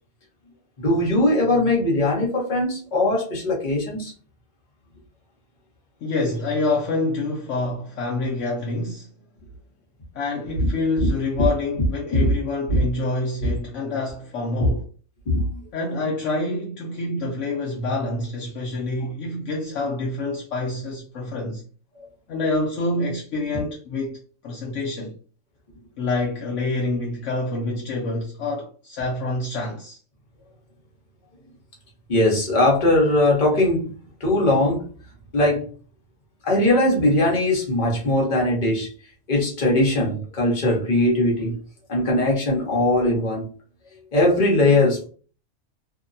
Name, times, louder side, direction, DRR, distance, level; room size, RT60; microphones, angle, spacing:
voice 1, 0.8-4.1 12.1-12.3 12.7-12.8 13.4-13.5 14.6-14.7 15.3-15.6 32.1-33.9 34.2-34.8 35.3-35.6 36.4-38.9 39.3-41.6 41.9-43.5 44.1-45.1, left 1 dB, 35° left, 1.0 m, -20 dB
voice 2, 6.0-9.1 10.1-14.8 15.7-21.6 22.3-24.2 24.4-25.1 26.0-30.0, left 2 dB, 65° left, 0.9 m, -27 dB
2.7 x 2.1 x 2.5 m
omnidirectional pair, 1.5 m